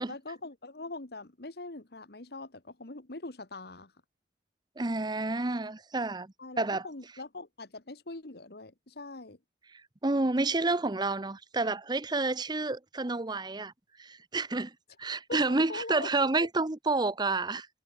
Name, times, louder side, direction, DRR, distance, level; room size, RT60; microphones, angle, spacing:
voice 1, 0.1-3.9 6.4-9.4 15.3-16.3, left 2 dB, 65° left, 1.7 m, -42 dB
voice 2, 4.8-6.9 9.7-13.7 14.0-17.7, right 3 dB, 25° right, 0.8 m, -30 dB
head